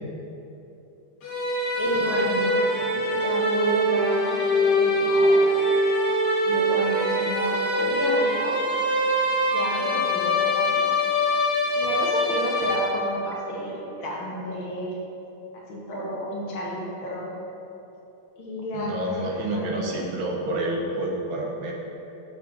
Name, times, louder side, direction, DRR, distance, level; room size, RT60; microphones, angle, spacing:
sound 1, 1.2-13.3, equal, 50° left, 1.9 m, -23 dB
voice 1, 1.8-5.4 6.5-8.6 9.5-10.8 11.8-15.0 15.7-17.3 18.4-20.1, equal, 70° left, -4 dB, 1.8 m, -31 dB
voice 2, 18.7-21.7, right 1 dB, 70° right, 0 dB, 1.6 m, -29 dB
5.9 x 4.1 x 6.1 m, 2.9 s
omnidirectional pair, 2.3 m